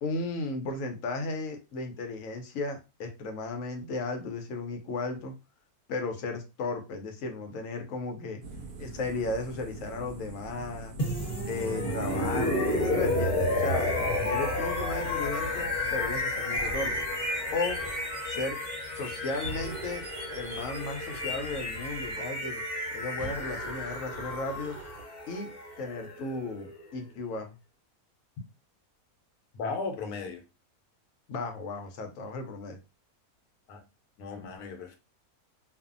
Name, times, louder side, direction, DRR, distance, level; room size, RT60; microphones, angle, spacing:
voice 1, 0.0-5.3 5.9-8.4 8.8-10.9 11.5-13.9 14.2-17.0 17.5-17.8 18.2-18.6 18.9-20.1 20.3-22.6 22.9-24.8 25.3-25.5 25.8-27.5 31.3-32.8, left 3 dB, 70° left, 1.0 m, -35 dB
sound 1, 8.4-16.2, right 2 dB, 65° right, 0.9 m, -43 dB
sound 2, 11.0-26.9, left 2 dB, 35° left, 0.9 m, -32 dB
sound 3, 16.5-18.3 19.4-22.3 23.2-25.1, right 3 dB, 85° right, 1.1 m, -44 dB
voice 2, 29.5-30.4 33.7-33.8 34.2-35.0, left 4 dB, 85° left, 1.2 m, -36 dB
2.5 x 2.4 x 2.4 m
omnidirectional pair, 1.6 m